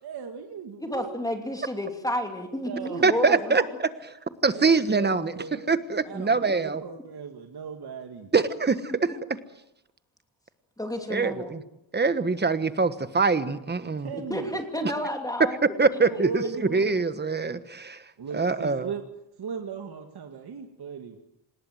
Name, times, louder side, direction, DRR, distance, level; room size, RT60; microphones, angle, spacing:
voice 1, 0.0-1.2 2.7-3.6 4.5-5.6 6.1-8.3 13.8-14.8 16.0-17.0 18.2-19.0 19.4-21.2, right 6 dB, 55° right, 4 dB, 2.3 m, -37 dB
voice 2, 0.8-3.5 8.9-9.2 10.8-11.6 14.1-15.6, equal, 10° left, 4 dB, 2.9 m, -31 dB
voice 3, 3.0-3.6 4.4-5.3 5.7-6.8 8.3-9.2 11.1-11.6 11.9-14.1 14.8-14.9 15.8-18.0 18.3-18.9, right 4 dB, 20° right, 12 dB, 1.3 m, -24 dB
26.5 x 20.5 x 7.7 m, 0.82 s
wide cardioid pair, 165°, 46 cm